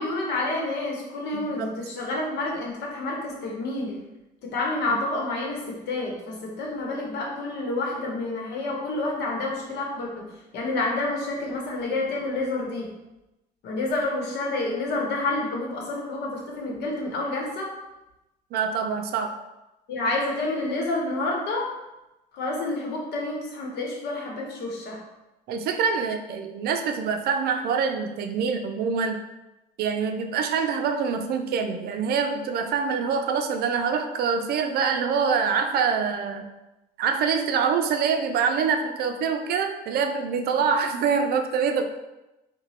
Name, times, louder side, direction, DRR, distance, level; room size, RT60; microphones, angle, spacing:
voice 1, 0.0-4.0 4.4-12.9 13.6-17.7 19.9-21.7 22.3-25.0, left 2 dB, 80° left, -1 dB, 1.0 m, -29 dB
voice 2, 1.3-1.7 4.9-5.0 18.5-19.3 25.5-29.2 29.8-36.5 37.0-41.8, right 6 dB, 65° right, 6 dB, 0.4 m, -25 dB
2.9 x 2.2 x 4.1 m, 0.98 s
cardioid pair, 110°, 17 cm